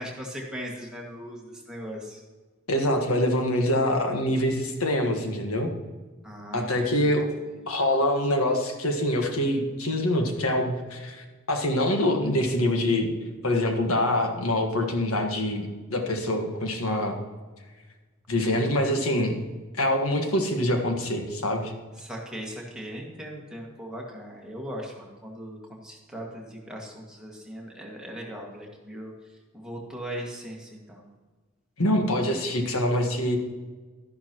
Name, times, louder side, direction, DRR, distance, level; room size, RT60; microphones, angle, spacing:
voice 1, 0.0-2.2 6.2-7.2 22.0-29.1 29.5-31.0, equal, 5° right, -2 dB, 1.9 m, -39 dB
voice 2, 2.7-5.7 6.5-7.3 7.7-13.1 13.4-17.2 18.3-19.3 19.8-21.7 31.8-33.4, left 1 dB, 85° left, 3 dB, 1.5 m, -25 dB
12.5 x 11.0 x 3.0 m, 1.3 s
head